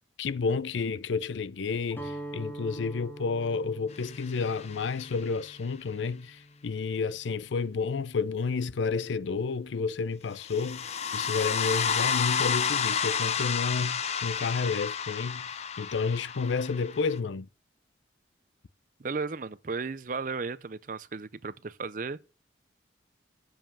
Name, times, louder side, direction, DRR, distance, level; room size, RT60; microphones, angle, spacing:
voice 1, 0.2-17.5, left 5 dB, 80° left, 0.5 m, -31 dB
Guitar, 1.9-7.9, right 1 dB, 10° left, 1.1 m, -45 dB
sound 1, 4.1-5.2 10.4-17.2, left 7 dB, 35° left, 0.6 m, -31 dB
voice 2, 19.0-22.2, right 4 dB, 45° right, 0.5 m, -35 dB
7.3 x 5.6 x 7.1 m
head